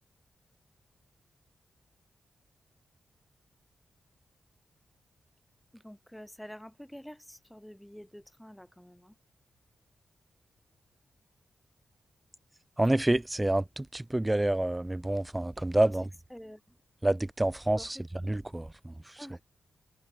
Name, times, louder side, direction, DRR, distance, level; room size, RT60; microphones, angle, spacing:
voice 1, 5.7-9.1 15.8-16.0 16.3-16.8 17.8-18.0 19.2-19.4, equal, 5° left, 4.8 m, -48 dB
voice 2, 12.8-16.0 17.0-17.9 18.3-18.9, right 1 dB, 15° right, 0.3 m, -28 dB
cardioid pair, 65°, 0 cm